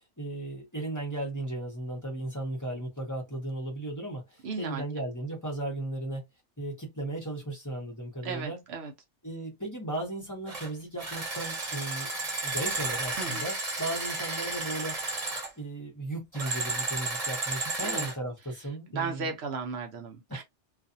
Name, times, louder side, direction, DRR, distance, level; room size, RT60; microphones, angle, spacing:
voice 1, 0.2-6.2 6.6-8.6 9.2-12.1 12.4-15.0 15.6-19.3 20.3-20.4, right 2 dB, 15° left, 0.9 m, -36 dB
voice 2, 4.4-4.8 8.2-8.9 13.2-13.4 17.8-18.1 18.9-20.4, right 5 dB, 70° right, 0.8 m, -35 dB
sound 1, 10.5-10.7 11.0-15.5 16.3-18.2, right 3 dB, 35° right, 1.0 m, -33 dB
2.4 x 2.4 x 2.6 m
omnidirectional pair, 1.2 m